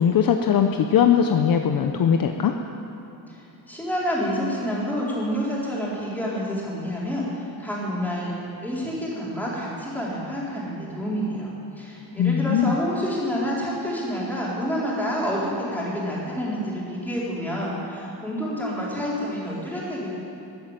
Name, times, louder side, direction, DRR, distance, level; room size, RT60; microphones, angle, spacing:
voice 1, 0.0-2.5 12.2-12.8, left 8 dB, 50° left, 5 dB, 0.7 m, -20 dB
voice 2, 3.7-8.3 8.6-11.5 11.8-20.1, equal, 5° left, -7 dB, 4.1 m, -28 dB
13.5 x 9.4 x 8.9 m, 2.8 s
cardioid pair, 140°, 45 cm